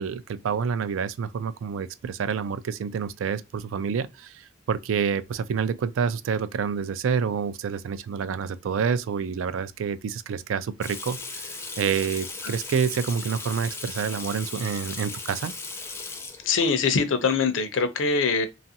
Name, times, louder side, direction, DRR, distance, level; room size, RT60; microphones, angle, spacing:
voice 1, 0.0-15.5, right 6 dB, 85° right, 0.3 m, -28 dB
Water tap faucet / Sink (filling or washing), 10.8-16.7, left 3 dB, 15° left, 0.4 m, -37 dB
voice 2, 16.5-18.5, left 5 dB, 70° left, 0.5 m, -23 dB
3.0 x 2.4 x 2.7 m
head